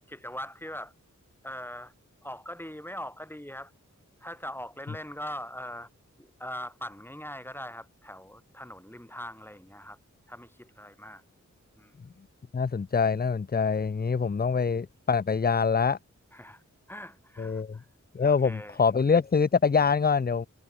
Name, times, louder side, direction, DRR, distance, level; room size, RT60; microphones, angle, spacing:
voice 1, 0.1-0.9 1.4-1.9 2.2-3.7 4.2-5.9 6.2-10.0 10.3-11.2 11.8-11.9 16.3-16.6 16.9-17.9 18.2-18.8, equal, 5° left, 5.9 m, -41 dB
voice 2, 12.5-16.0 17.4-17.8 18.1-20.5, left 5 dB, 30° left, 0.6 m, -25 dB
wide cardioid pair, 70°, 30 cm